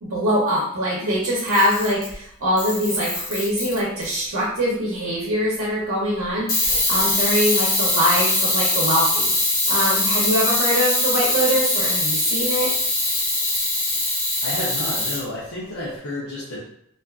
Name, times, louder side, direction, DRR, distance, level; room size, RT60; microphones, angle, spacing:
voice 1, 0.0-12.7, equal, 75° right, -5 dB, 0.7 m, -23 dB
Camera, 1.4-2.1 2.6-4.1 6.5-15.2, left 2 dB, 60° left, 1.0 m, -22 dB
voice 2, 14.1-16.6, left 1 dB, 85° left, -7 dB, 0.6 m, -31 dB
2.4 x 2.4 x 2.3 m, 0.72 s
head